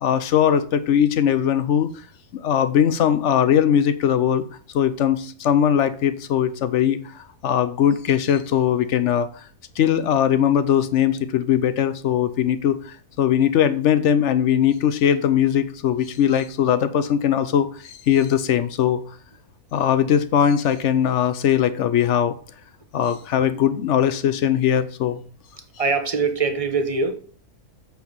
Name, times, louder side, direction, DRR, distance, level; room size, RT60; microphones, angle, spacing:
voice 1, 0.0-1.9 2.3-4.4 4.7-9.5 9.8-19.2 19.7-22.4 22.9-25.2, left 9 dB, 65° left, 13 dB, 0.7 m, -20 dB
voice 2, 25.8-27.1, right 4 dB, 30° right, 7 dB, 0.8 m, -22 dB
8.1 x 4.5 x 5.4 m, 0.43 s
omnidirectional pair, 1.6 m